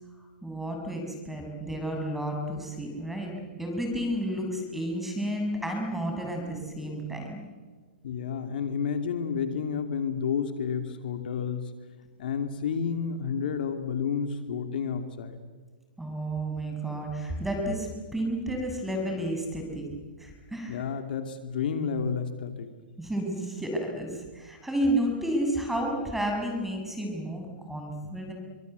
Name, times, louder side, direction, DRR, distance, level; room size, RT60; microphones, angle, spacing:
voice 1, 0.4-3.3 3.6-7.4 16.0-19.9 20.2-20.8 23.0-28.3, right 1 dB, 5° right, 2 dB, 7.5 m, -31 dB
voice 2, 8.0-11.7 12.2-15.4 20.7-22.7, left 6 dB, 65° left, 6 dB, 2.9 m, -30 dB
28.0 x 25.0 x 8.4 m, 1.4 s
hypercardioid pair, 135°, 6 cm